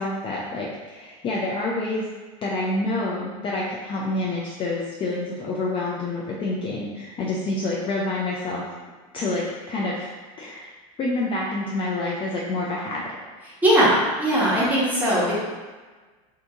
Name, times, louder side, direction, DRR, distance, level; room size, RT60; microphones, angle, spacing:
voice 1, 0.0-2.0 2.4-8.6 9.1-10.1 10.4-10.7 11.0-13.0, left 2 dB, 30° left, -4 dB, 0.4 m, -27 dB
voice 2, 13.6-15.3, right 1 dB, 10° right, -8 dB, 1.1 m, -19 dB
2.7 x 2.6 x 3.5 m, 1.4 s
supercardioid pair, 125°, 18 cm